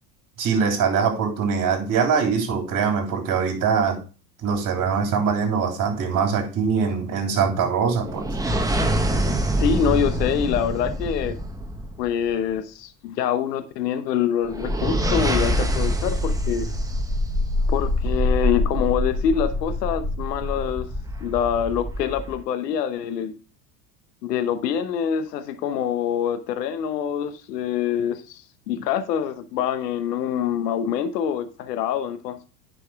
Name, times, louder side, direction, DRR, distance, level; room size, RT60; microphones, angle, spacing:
voice 1, 0.4-4.0 4.4-8.3, right 6 dB, 40° right, 3.3 m, -22 dB
sound 1, 7.9-12.3 14.4-22.4, equal, 5° right, 1.2 m, -25 dB
voice 2, 9.5-11.4 12.0-16.7 17.7-20.9 21.2-23.3 24.2-32.5, left 8 dB, 75° left, 1.0 m, -25 dB
10.0 x 5.6 x 3.5 m
hypercardioid pair, 85°, 48 cm